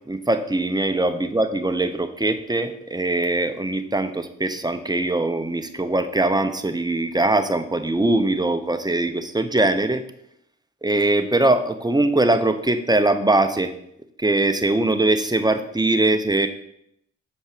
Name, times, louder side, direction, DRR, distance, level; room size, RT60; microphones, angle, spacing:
voice 1, 0.1-10.0 10.8-13.7 14.2-16.5, right 2 dB, 10° right, 8 dB, 0.9 m, -21 dB
7.3 x 5.3 x 5.0 m, 0.74 s
supercardioid pair, 45°, 33 cm